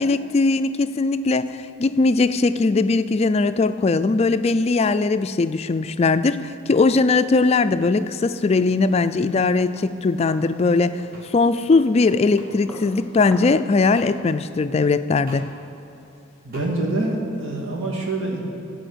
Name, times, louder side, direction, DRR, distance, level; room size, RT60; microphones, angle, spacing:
voice 1, 0.0-1.5 1.8-11.0 11.3-15.5, left 3 dB, 30° left, 12 dB, 0.3 m, -20 dB
sound 1, 7.9-13.6, left 1 dB, 5° left, 1.5 m, -45 dB
sound 2, 11.1-11.3 12.4-12.5 13.9-14.1 15.3-15.5 16.5-16.7, right 1 dB, 45° right, 1.5 m, -41 dB
voice 2, 16.4-18.4, right 2 dB, 75° right, -1 dB, 2.1 m, -25 dB
14.5 x 5.0 x 7.9 m, 2.7 s
head